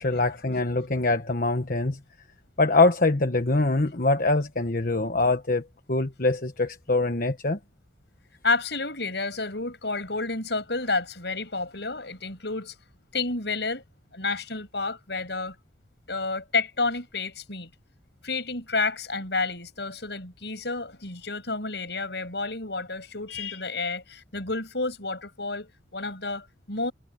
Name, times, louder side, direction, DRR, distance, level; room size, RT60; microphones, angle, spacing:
voice 1, 0.0-2.0 2.6-5.6 5.9-7.6, left 2 dB, 45° left, 1.3 m, -23 dB
voice 2, 8.4-12.7 13.1-13.8 14.1-15.6 16.1-17.7 18.2-26.9, left 3 dB, 60° left, 7.7 m, -30 dB
head